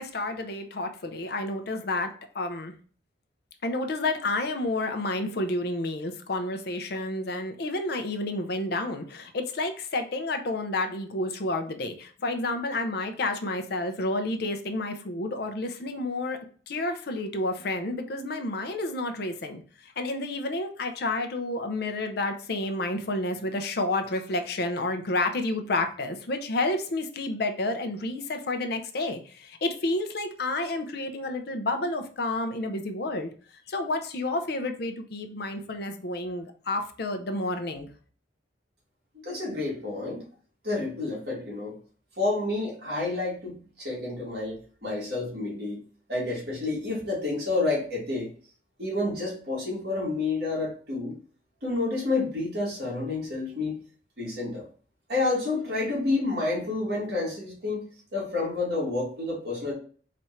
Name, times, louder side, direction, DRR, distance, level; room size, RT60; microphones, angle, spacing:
voice 1, 0.0-2.7 3.6-16.4 16.7-33.3 33.7-37.9, left 2 dB, 55° left, 7 dB, 0.6 m, -30 dB
voice 2, 39.2-40.2 40.6-41.8 42.2-45.8 46.1-48.3 48.8-51.1 51.6-53.8 54.2-54.7 55.1-57.8 58.1-59.7, left 2 dB, 55° right, -4 dB, 2.1 m, -29 dB
4.2 x 2.5 x 4.3 m, 0.43 s
head